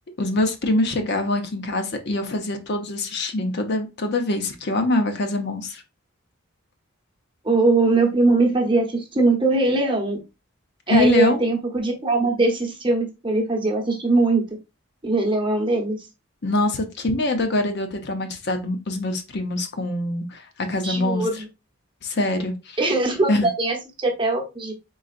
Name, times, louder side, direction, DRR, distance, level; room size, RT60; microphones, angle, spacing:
voice 1, 0.2-5.8 10.9-11.4 16.4-21.4 22.0-22.8 23.3-23.5, left 2 dB, 50° left, 0.7 m, -24 dB
voice 2, 7.4-10.2 10.9-14.4 15.0-16.1 20.8-21.5 22.8-24.7, right 2 dB, 25° right, 0.9 m, -21 dB
4.0 x 3.9 x 2.5 m
head